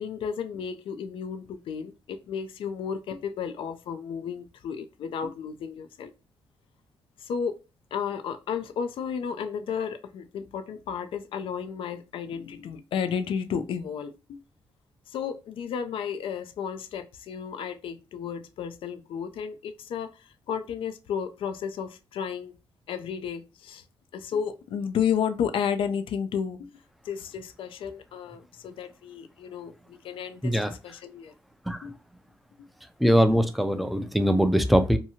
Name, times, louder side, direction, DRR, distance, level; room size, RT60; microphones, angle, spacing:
voice 1, 0.0-6.1 7.2-7.6 7.9-14.4 15.1-22.5 22.9-23.8 24.1-26.8 27.0-31.3 31.8-31.9, left 7 dB, 70° left, 0.4 m, -32 dB
voice 2, 30.4-30.7 31.7-31.8 33.0-35.0, equal, ahead, 0.4 m, -22 dB
2.8 x 2.3 x 2.8 m
supercardioid pair, 60°, 9 cm